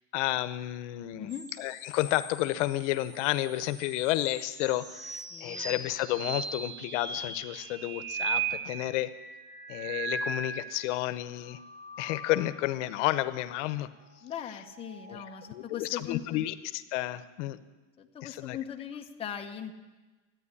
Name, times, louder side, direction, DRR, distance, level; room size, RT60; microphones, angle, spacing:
voice 1, 0.1-1.3 1.6-9.1 9.7-11.6 12.0-13.9 15.1-15.2 15.5-17.6 18.2-18.6, left 15 dB, 85° left, 12 dB, 0.8 m, -31 dB
voice 2, 1.2-1.5 5.3-5.8 14.2-16.5 18.0-19.8, left 9 dB, 15° left, 2 dB, 0.8 m, -39 dB
sound 1, 1.3-10.9 11.3-12.7 14.5-15.6, right 5 dB, 55° right, 4.8 m, -39 dB
14.0 x 9.3 x 9.7 m, 1.2 s
cardioid pair, 165°, 35 cm